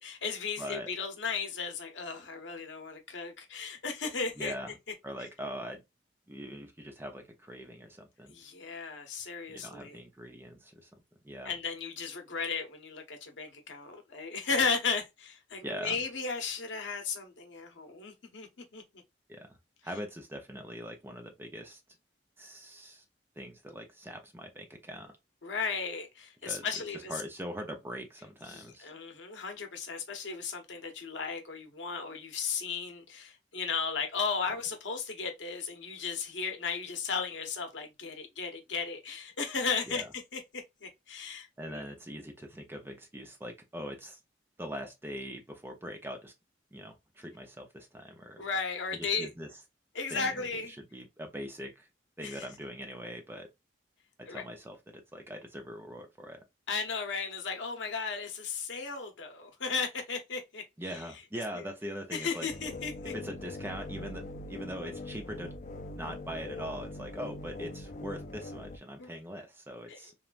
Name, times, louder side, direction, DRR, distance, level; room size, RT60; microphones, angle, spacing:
voice 1, 0.0-4.5 8.3-10.0 11.4-18.5 18.7-18.8 25.4-27.1 28.4-40.0 40.3-40.4 40.8-41.8 48.4-49.3 49.9-50.7 52.2-52.5 54.3-54.4 56.7-60.6 61.5-61.6 62.1-63.1 69.0-69.1 69.9-70.0, left 5 dB, 75° left, 0.8 m, -35 dB
voice 2, 0.6-0.9 4.4-4.7 5.0-5.8 6.3-8.4 9.5-10.9 11.2-11.5 15.6-16.0 19.3-19.5 19.8-21.8 22.4-23.0 23.4-25.1 26.4-26.7 26.9-28.9 39.9-40.1 41.6-44.2 44.6-46.3 46.7-48.4 48.9-49.5 50.1-51.9 52.2-53.5 54.2-56.4 60.8-62.5 63.1-65.5 65.9-70.1, equal, 10° right, 0.6 m, -42 dB
sound 1, 62.5-68.8, left 2 dB, 40° left, 0.4 m, -42 dB
3.1 x 2.3 x 2.4 m
head